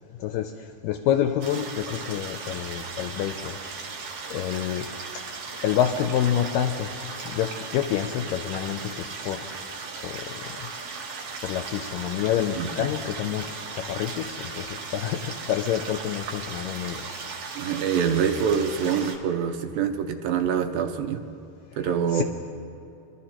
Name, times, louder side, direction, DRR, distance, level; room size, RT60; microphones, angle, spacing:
voice 1, 0.2-3.6 4.3-4.9 5.1-5.2 5.6-6.9 7.3-9.6 10.0-10.7 11.4-17.1 22.1-22.2, left 10 dB, 85° left, 6 dB, 2.0 m, -28 dB
sound 1, 1.4-19.2, right 4 dB, 60° right, 1.7 m, -37 dB
voice 2, 17.6-21.2 21.8-22.2, right 7 dB, 85° right, 6 dB, 2.4 m, -25 dB
25.0 x 12.5 x 2.9 m, 2.7 s
omnidirectional pair, 4.3 m